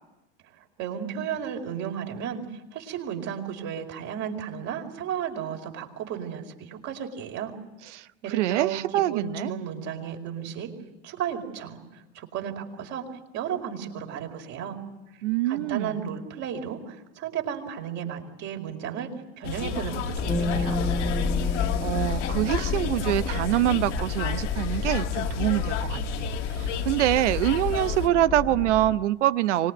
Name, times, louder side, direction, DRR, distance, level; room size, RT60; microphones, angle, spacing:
voice 1, 0.8-7.5 8.2-10.7 11.0-13.1 13.3-14.8 15.1-20.8, right 8 dB, 50° right, 2 dB, 5.0 m, -34 dB
voice 2, 7.9-9.5 15.2-16.1 21.8-29.7, right 14 dB, 85° right, 14 dB, 0.9 m, -25 dB
sound 1, 19.4-28.1, left 6 dB, 85° left, 2.4 m, -32 dB
sound 2, 20.1-29.0, left 6 dB, 35° left, 2.0 m, -31 dB
sound 3, 20.3-23.6, equal, 15° left, 1.7 m, -33 dB
25.0 x 20.0 x 9.7 m, 1.0 s
hypercardioid pair, 100°, 35 cm